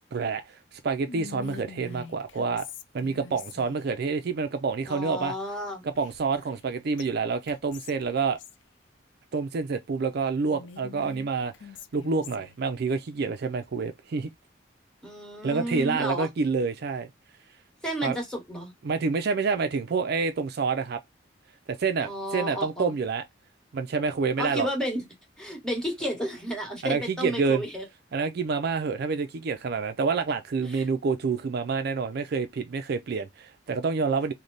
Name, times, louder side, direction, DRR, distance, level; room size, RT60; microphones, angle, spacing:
voice 1, 0.1-2.7 2.9-5.3 6.0-8.4 9.3-11.5 11.9-14.3 15.4-17.1 18.0-18.2 18.8-21.0 21.7-23.2 23.7-24.7 26.8-27.6 28.1-34.3, right 4 dB, 55° right, 0.4 m, -28 dB
Whispering, 1.1-3.9 5.9-6.7 7.0-7.1 7.5-8.6 10.4-12.6, left 7 dB, 80° left, 0.5 m, -45 dB
voice 2, 4.9-5.8 15.0-16.3 17.8-18.7 22.0-22.9 24.4-25.0 25.4-27.8 30.7-30.9, equal, 5° left, 1.3 m, -32 dB
3.2 x 2.1 x 3.9 m
head